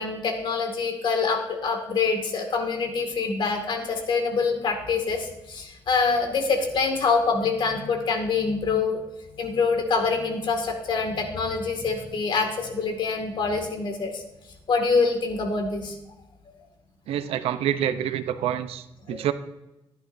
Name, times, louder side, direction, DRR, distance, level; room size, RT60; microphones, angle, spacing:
voice 1, 0.0-9.0 9.3-14.2 14.7-15.9 19.1-19.2, left 4 dB, 55° left, 4 dB, 2.2 m, -25 dB
voice 2, 17.1-19.3, right 10 dB, 85° right, 11 dB, 0.7 m, -27 dB
14.5 x 10.0 x 2.7 m, 0.95 s
cardioid pair, 105°, 10 cm